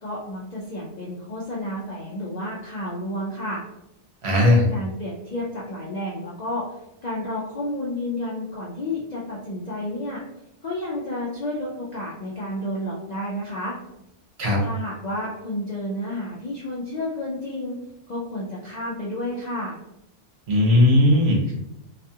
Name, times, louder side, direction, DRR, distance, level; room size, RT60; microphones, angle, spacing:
voice 1, 0.0-3.6 4.4-6.7 7.0-10.2 10.6-13.8 14.6-17.8 18.1-19.8, left 1 dB, 60° left, -6 dB, 0.4 m, -30 dB
voice 2, 4.2-4.6 14.4-14.6 20.5-21.5, left 1 dB, 65° right, -2 dB, 1.0 m, -17 dB
2.4 x 2.3 x 2.7 m, 0.84 s
omnidirectional pair, 1.2 m